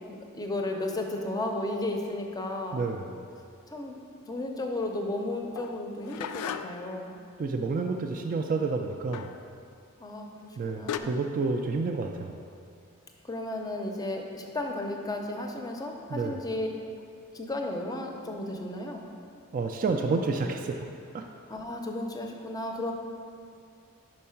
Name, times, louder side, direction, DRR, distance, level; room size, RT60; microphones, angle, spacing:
voice 1, 0.3-2.8 3.7-4.0 4.2-7.1 10.0-11.2 13.2-16.7 17.3-19.1 21.5-22.9, left 1 dB, 15° left, 2 dB, 0.5 m, -34 dB
voice 2, 2.7-3.2 7.4-9.4 10.6-12.4 16.1-16.4 19.5-20.9 21.1-21.2, right 4 dB, 40° right, 3 dB, 0.3 m, -29 dB
sound 1, 5.6-6.9 9.1-9.4 10.4-10.5 10.9-11.0, left 8 dB, 90° left, 0.3 m, -36 dB
5.3 x 4.6 x 5.7 m, 2.3 s
head